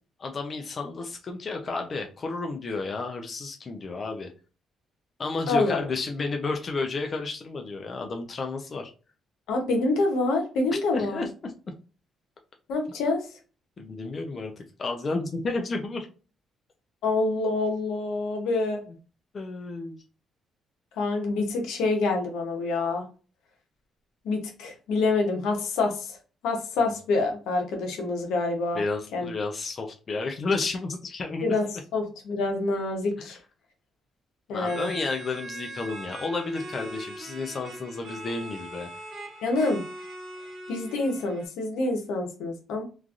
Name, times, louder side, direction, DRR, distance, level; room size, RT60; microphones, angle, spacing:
voice 1, 0.2-4.3 5.2-8.9 10.7-11.5 13.8-16.1 19.3-20.0 28.7-31.5 33.2-33.3 34.5-38.9, left 3 dB, 40° left, 3 dB, 0.5 m, -32 dB
voice 2, 5.5-5.9 9.5-11.2 12.7-13.3 17.0-18.8 21.0-23.0 24.2-26.2 26.4-28.8 29.1-29.3 31.4-31.7 31.9-33.4 34.5-34.9 39.4-39.8 40.7-42.8, left 3 dB, 90° left, 2 dB, 0.9 m, -26 dB
sound 1, 34.6-41.5, right 1 dB, 55° right, 1.0 m, -41 dB
3.1 x 2.5 x 2.4 m, 0.35 s
cardioid pair, 90°, 0 cm